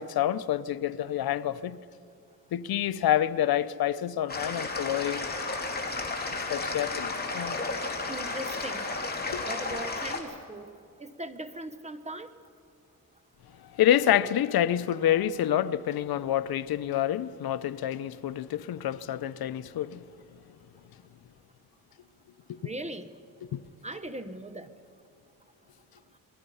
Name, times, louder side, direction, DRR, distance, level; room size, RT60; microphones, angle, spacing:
voice 1, 0.0-1.8 2.5-5.3 6.5-7.6 9.3-9.4 13.7-20.0 23.5-23.6, left 11 dB, 85° left, 0.7 m, -27 dB
sound 1, 4.3-10.2, left 3 dB, 25° left, 2.8 m, -33 dB
voice 2, 8.1-8.9 9.5-10.7 11.0-12.3 22.6-23.1 23.8-24.7, right 1 dB, 20° right, 1.1 m, -39 dB
28.0 x 21.5 x 5.5 m
cardioid pair, 100°, 36 cm